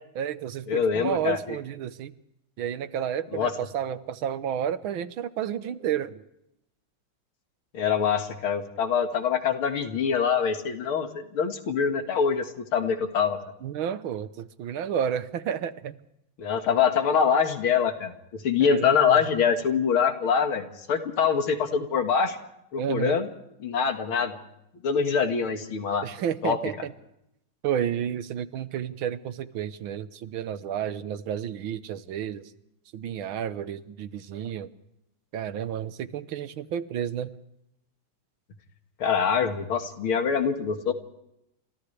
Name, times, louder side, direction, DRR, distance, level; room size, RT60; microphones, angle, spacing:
voice 1, 0.1-2.1 2.6-6.2 13.6-16.0 18.6-19.2 22.8-23.2 26.0-26.9 27.6-32.5 32.9-34.7 35.3-37.3, right 9 dB, 80° right, 13 dB, 1.8 m, -31 dB
voice 2, 0.7-1.6 3.3-3.5 7.7-13.4 16.4-22.4 22.7-23.3 23.6-24.4 24.8-26.1 26.4-26.6 39.0-40.9, left 6 dB, 85° left, 6 dB, 2.7 m, -24 dB
30.0 x 28.0 x 3.3 m, 0.82 s
omnidirectional pair, 2.2 m